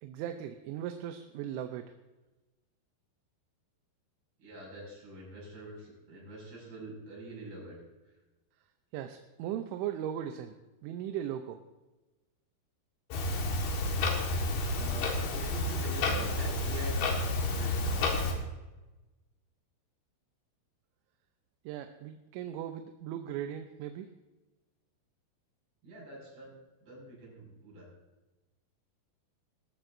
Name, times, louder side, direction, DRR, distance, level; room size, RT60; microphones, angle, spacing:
voice 1, 0.0-1.9 8.9-10.6 10.8-11.6 21.7-24.1, right 10 dB, 90° right, 7 dB, 3.1 m, -38 dB
voice 2, 4.4-7.8 13.7-14.0 14.7-18.0 25.8-26.5 26.8-27.9, right 2 dB, 75° right, -4 dB, 8.2 m, -45 dB
Clock, 13.1-18.3, left 2 dB, 65° left, 3.4 m, -30 dB
20.0 x 14.0 x 2.6 m, 1.1 s
omnidirectional pair, 5.3 m